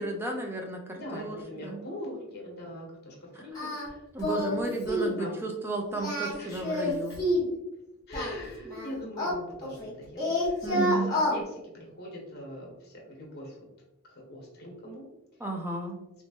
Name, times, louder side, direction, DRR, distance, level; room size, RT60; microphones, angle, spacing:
voice 1, 0.0-1.4 1.6-1.8 3.3-3.4 4.1-7.2 8.7-8.9 10.6-11.2 15.4-16.0, right 2 dB, 10° right, 1 dB, 0.5 m, -33 dB
voice 2, 0.9-4.6 4.9-5.4 6.4-6.9 8.1-13.6 14.0-15.0, equal, 50° left, -1 dB, 1.1 m, -41 dB
Singing, 3.5-3.9 4.2-4.6 4.9-5.2 5.9-7.5 8.1-9.9 10.2-11.4, left 1 dB, 20° left, 1.2 m, -29 dB
3.2 x 3.0 x 2.8 m, 0.92 s
head